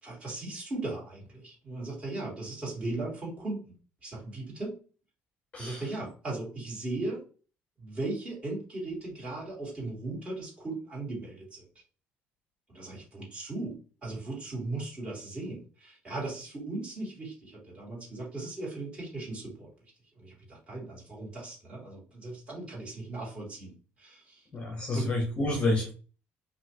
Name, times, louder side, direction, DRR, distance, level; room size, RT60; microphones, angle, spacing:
voice 1, 0.0-3.7 4.0-4.8 5.6-7.2 7.8-11.7 12.7-19.7 20.2-24.5 24.9-25.1, right 2 dB, 25° right, 2.4 m, -37 dB
voice 2, 24.5-25.9, left 2 dB, 25° left, 0.9 m, -29 dB
5.3 x 2.6 x 2.9 m
cardioid pair, 155°, 5 cm